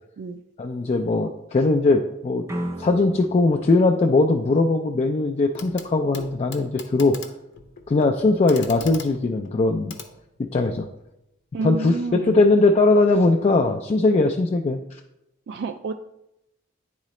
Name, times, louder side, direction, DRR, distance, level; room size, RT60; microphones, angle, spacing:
voice 1, 0.6-2.5 2.8-7.2 7.9-9.9 10.5-10.9 11.6-15.0, left 3 dB, 35° left, 3 dB, 0.3 m, -20 dB
sound 1, 2.5-5.4, right 1 dB, 15° right, 0.6 m, -36 dB
Clock, 5.5-5.9 6.1-10.8 12.1-12.2, left 5 dB, 70° left, 0.7 m, -41 dB
voice 2, 11.5-12.5 15.5-15.9, right 3 dB, 60° right, 6 dB, 0.3 m, -29 dB
9.6 x 3.8 x 3.1 m, 0.87 s
head